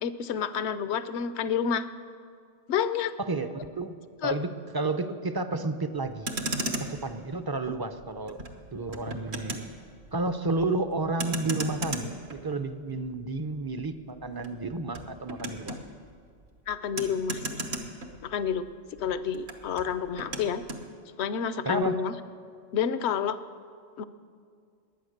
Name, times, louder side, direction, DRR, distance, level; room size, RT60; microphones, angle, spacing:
voice 1, 0.0-1.9 2.7-3.1 4.2-4.4 16.7-17.6 18.2-18.7 19.0-20.6 21.2-22.1 22.7-23.4 24.0-24.1, left 7 dB, 75° left, 13 dB, 1.0 m, -29 dB
voice 2, 3.2-4.0 4.2-6.3 6.9-8.4 8.7-9.6 10.1-15.8 21.7-22.0, right 2 dB, 25° right, 9 dB, 0.6 m, -31 dB
Motor vehicle (road), 6.0-18.7 18.9-20.9, right 2 dB, 70° right, 1.5 m, -37 dB
21.0 x 9.1 x 6.6 m, 2.3 s
omnidirectional pair, 1.1 m